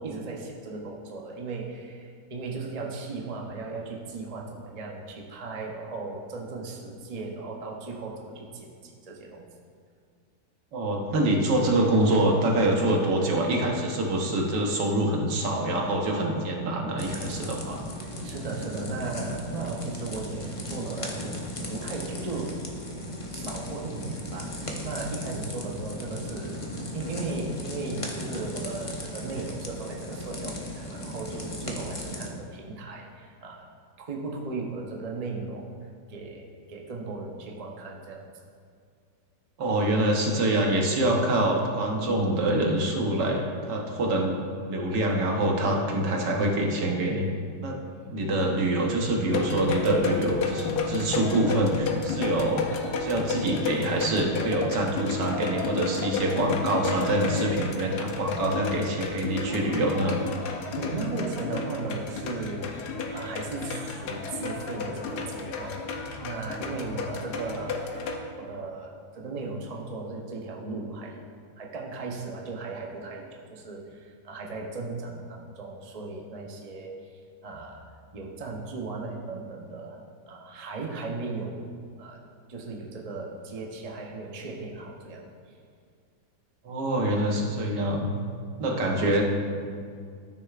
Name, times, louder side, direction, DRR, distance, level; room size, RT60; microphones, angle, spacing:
voice 1, 0.0-9.5 18.0-21.4 21.7-22.6 22.9-26.6 26.9-33.7 34.0-35.7 36.1-38.3 60.8-71.2 71.6-77.8 78.1-80.0 80.3-81.7 82.0-82.2 82.5-85.6, right 3 dB, 45° right, -1 dB, 0.5 m, -36 dB
voice 2, 10.7-17.8 39.6-47.3 47.6-47.8 48.1-52.7 53.0-60.2 86.6-88.1 88.6-89.2, right 1 dB, 80° right, 0 dB, 1.7 m, -25 dB
sound 1, 17.0-32.3, left 1 dB, 35° left, 0.5 m, -36 dB
sound 2, 49.3-68.2, left 4 dB, 70° left, 1.2 m, -32 dB
13.0 x 6.4 x 2.4 m, 2.2 s
omnidirectional pair, 1.8 m